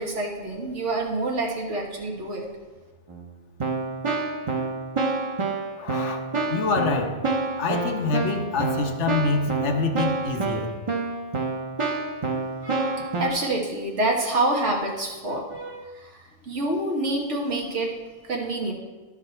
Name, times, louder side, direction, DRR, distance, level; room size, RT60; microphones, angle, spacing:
voice 1, 0.0-2.5 12.6-16.1 16.4-17.9 18.2-18.7, right 2 dB, 85° right, 0 dB, 1.8 m, -27 dB
Keyboard (musical), 3.1-3.2 3.6-13.3, right 3 dB, 30° right, 0.8 m, -28 dB
voice 2, 5.8-6.2 6.5-7.2 7.6-10.8, left 4 dB, 85° left, 5 dB, 1.2 m, -26 dB
12.5 x 4.7 x 4.4 m, 1.3 s
omnidirectional pair, 1.2 m